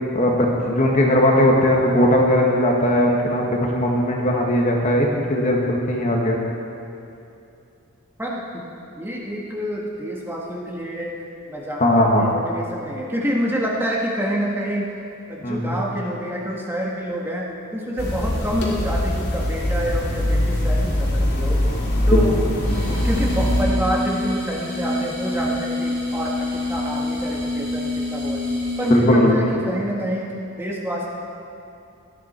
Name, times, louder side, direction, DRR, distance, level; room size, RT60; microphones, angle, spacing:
voice 1, 0.1-6.4 11.8-12.3 15.4-15.8 21.8-22.2 22.7-22.8 28.9-29.5, left 1 dB, 35° left, -1 dB, 1.5 m, -18 dB
voice 2, 8.2-8.6 9.0-11.1 11.5-14.9 15.3-21.6 22.1-28.4 28.8-30.3 30.6-31.1, equal, 10° right, -3 dB, 1.6 m, -27 dB
sound 1, 18.0-23.6, left 1 dB, 50° left, 2.5 m, -22 dB
sound 2, 22.6-29.1, left 1 dB, 40° right, 3.9 m, -27 dB
18.0 x 12.0 x 4.4 m, 2.7 s
head